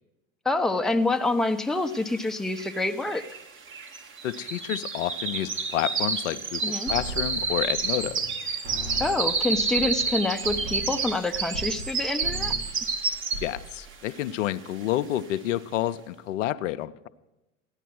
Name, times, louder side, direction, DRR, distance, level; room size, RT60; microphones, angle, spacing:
voice 1, 0.4-3.3 6.6-6.9 9.0-12.5, left 2 dB, ahead, 6 dB, 0.6 m, -27 dB
sound 1, 1.9-2.0 2.2-13.7 14.1-14.4 14.8-14.9, right 4 dB, 30° right, 1.2 m, -29 dB
voice 2, 4.2-8.2 13.4-17.1, left 13 dB, 75° left, 12 dB, 0.6 m, -29 dB
sound 2, 6.9-8.4 8.6-11.9 12.2-12.8 13.1-13.7, right 2 dB, 80° right, 2.7 m, -38 dB
15.0 x 10.0 x 6.1 m, 1.0 s
hypercardioid pair, 80°, 37 cm